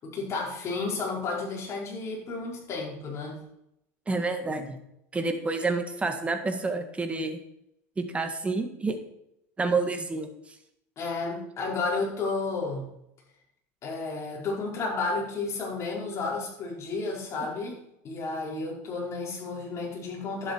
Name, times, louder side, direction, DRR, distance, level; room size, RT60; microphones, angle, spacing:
voice 1, 0.0-3.4 11.0-12.9 13.8-20.5, left 3 dB, 35° left, -3 dB, 5.3 m, -32 dB
voice 2, 4.1-4.8 5.1-7.4 8.0-9.0 9.6-10.3, right 3 dB, 15° right, 6 dB, 1.8 m, -28 dB
11.5 x 10.0 x 4.6 m, 0.79 s
supercardioid pair, 125°, 8 cm